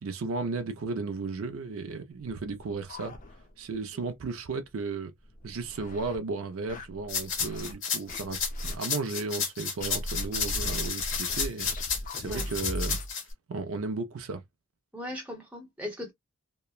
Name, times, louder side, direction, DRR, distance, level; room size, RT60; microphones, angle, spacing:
voice 1, 0.0-3.1 3.6-5.1 5.4-13.0 13.5-14.4, right 4 dB, 70° right, 0.4 m, -34 dB
sound 1, 2.2-3.7 4.1-4.2 4.5-4.6 5.2-6.2 6.7-7.7 8.1-8.8 9.8-13.1, left 1 dB, 35° left, 0.5 m, -38 dB
sound 2, 7.1-13.2, left 6 dB, 60° left, 1.1 m, -31 dB
voice 2, 14.9-16.1, left 1 dB, 5° right, 0.8 m, -38 dB
2.9 x 2.1 x 2.3 m
head